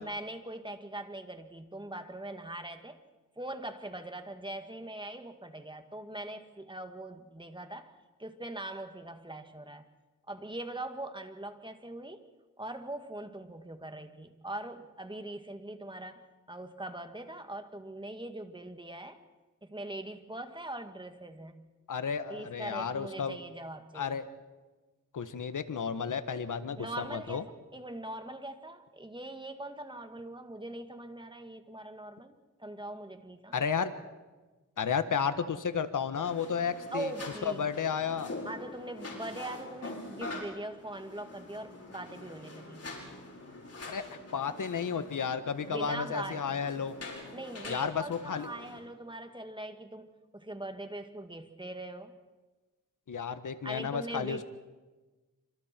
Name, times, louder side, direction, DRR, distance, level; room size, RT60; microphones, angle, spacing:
voice 1, 0.0-3.0 3.4-7.9 8.2-9.9 10.3-12.3 12.6-19.2 19.6-21.6 22.3-24.2 26.8-27.5 27.7-33.6 36.9-37.7 38.4-42.8 45.7-46.4 47.3-52.2 53.6-54.4, right 1 dB, 15° right, 7 dB, 2.1 m, -41 dB
voice 2, 21.9-23.4 23.9-24.3 25.1-27.4 33.5-33.9 34.8-37.1 37.4-38.3 43.9-46.9 47.7-48.5 53.1-54.4, left 6 dB, 70° left, 11 dB, 1.5 m, -32 dB
sound 1, 36.1-48.8, left 2 dB, 50° left, 6.0 m, -45 dB
27.0 x 26.0 x 4.6 m, 1.2 s
cardioid pair, 65°, 33 cm